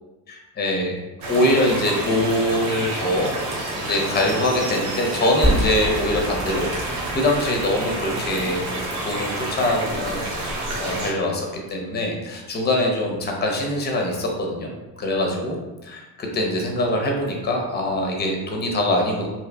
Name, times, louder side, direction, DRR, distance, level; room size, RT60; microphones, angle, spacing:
voice 1, 0.3-1.0 1.3-3.3 3.7-10.5 10.7-14.7 15.0-19.3, left 1 dB, 25° left, 0 dB, 0.6 m, -23 dB
sound 1, 1.2-11.1, right 1 dB, 80° right, 0.9 m, -29 dB
sound 2, 5.4-9.6 10.0-10.1 11.5-11.6, right 1 dB, 15° right, 0.9 m, -28 dB
2.7 x 2.5 x 2.2 m, 1.1 s
hypercardioid pair, 70°, 45 cm